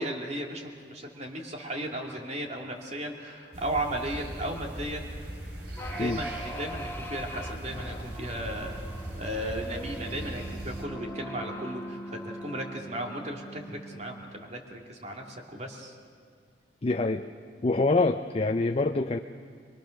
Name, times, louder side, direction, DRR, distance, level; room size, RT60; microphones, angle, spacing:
voice 1, 0.0-5.1 5.9-8.8 9.2-15.9, right 1 dB, 40° right, 1 dB, 2.6 m, -35 dB
sound 1, 3.5-10.8, right 1 dB, 60° right, 3.2 m, -39 dB
sound 2, 5.8-14.5, right 1 dB, 10° left, 1.6 m, -42 dB
voice 2, 16.8-17.3 17.6-19.2, left 3 dB, 35° left, 6 dB, 0.6 m, -25 dB
24.0 x 22.5 x 6.5 m, 2.1 s
head